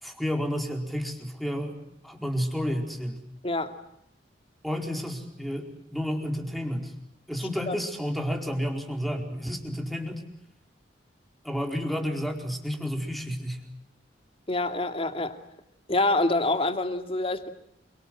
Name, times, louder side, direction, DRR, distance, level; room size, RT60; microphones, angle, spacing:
voice 1, 0.0-1.7 2.0-3.2 4.6-6.9 7.3-10.2 11.4-13.6, equal, ahead, 3 dB, 4.6 m, -31 dB
voice 2, 3.4-3.7 7.7-7.8 14.5-15.4 15.9-17.5, left 2 dB, 35° left, 7 dB, 2.6 m, -26 dB
28.5 x 25.0 x 7.8 m, 0.78 s
head